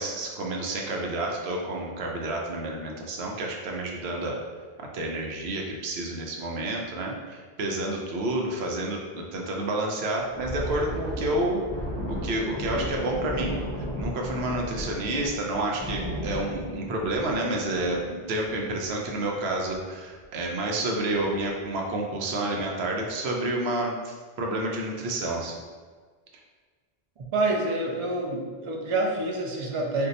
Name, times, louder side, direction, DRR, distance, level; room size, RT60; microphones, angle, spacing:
voice 1, 0.0-4.4 4.8-11.6 12.1-25.6, right 2 dB, 85° right, 0 dB, 0.8 m, -29 dB
Thunder, 10.3-19.3 19.6-19.8 20.2-20.5 21.1-21.5, equal, 10° left, 0.5 m, -35 dB
voice 2, 27.2-30.1, right 2 dB, 50° right, 0 dB, 0.4 m, -27 dB
2.6 x 2.2 x 3.9 m, 1.5 s
omnidirectional pair, 1.0 m